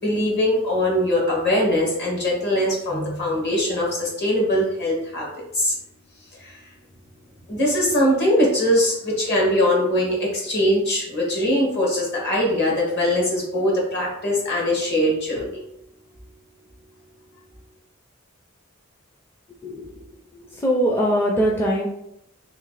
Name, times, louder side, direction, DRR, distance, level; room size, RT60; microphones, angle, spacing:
voice 1, 0.0-5.3 5.5-5.7 6.4-6.6 7.5-15.6, left 1 dB, 55° left, -2 dB, 1.5 m, -21 dB
voice 2, 20.6-21.9, equal, 10° left, -3 dB, 0.4 m, -21 dB
3.1 x 3.1 x 3.8 m, 0.79 s
head